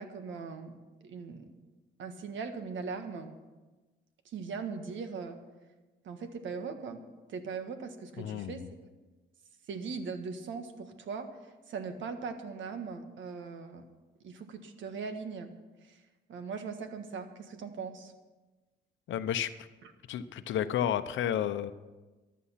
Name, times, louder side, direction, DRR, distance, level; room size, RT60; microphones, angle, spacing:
voice 1, 0.0-1.5 2.0-3.3 4.2-5.4 6.0-7.0 7.3-8.6 9.7-11.3 11.7-13.9 14.2-15.5 15.8-16.0 16.3-18.1, right 5 dB, 75° right, 7 dB, 1.6 m, -40 dB
voice 2, 8.2-8.7 19.1-19.5 20.1-21.7, left 10 dB, 75° left, 12 dB, 0.8 m, -31 dB
14.5 x 11.0 x 5.8 m, 1.2 s
cardioid pair, 90°, 20 cm